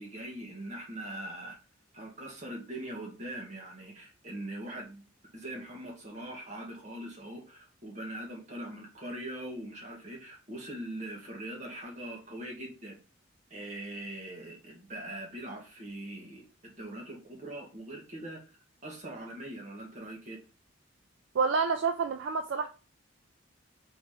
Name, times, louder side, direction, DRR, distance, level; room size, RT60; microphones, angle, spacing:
voice 1, 0.0-1.6 1.9-5.0 5.3-13.0 13.5-18.4 18.8-20.4, right 1 dB, 35° right, 1.6 m, -42 dB
voice 2, 21.3-22.7, right 5 dB, 65° right, 0.4 m, -28 dB
4.1 x 3.6 x 3.6 m
head